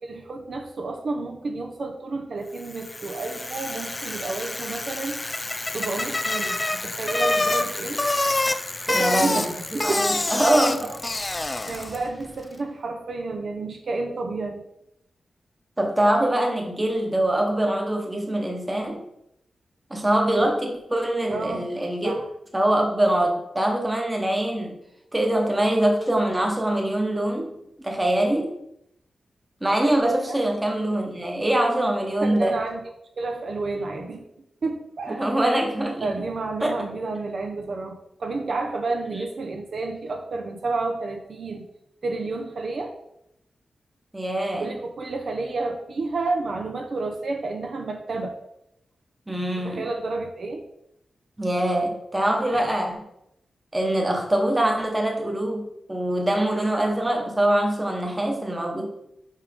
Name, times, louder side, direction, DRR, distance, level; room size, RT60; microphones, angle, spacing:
voice 1, 0.0-5.2 5.7-8.0 8.9-9.5 9.7-10.1 10.8-11.0 11.7-14.6 21.3-21.7 22.0-22.2 30.3-30.4 32.2-32.8 33.2-34.2 34.6-35.2 36.0-41.6 42.0-42.9 44.6-48.3 49.6-50.6 52.5-52.7, right 3 dB, 55° right, 3 dB, 0.9 m, -30 dB
Bicycle, 2.7-12.1, left 2 dB, 20° left, 0.4 m, -27 dB
voice 2, 8.9-9.4 9.7-10.9 15.8-19.0 19.9-22.1 22.5-24.8 25.1-27.5 27.8-28.5 29.6-32.6 35.1-36.1 36.6-36.7 39.1-39.3 44.1-44.8 49.3-49.9 51.4-53.0 53.7-58.9, right 1 dB, 10° right, 1 dB, 1.2 m, -23 dB
5.5 x 5.0 x 5.2 m, 0.78 s
wide cardioid pair, 155°, 0 cm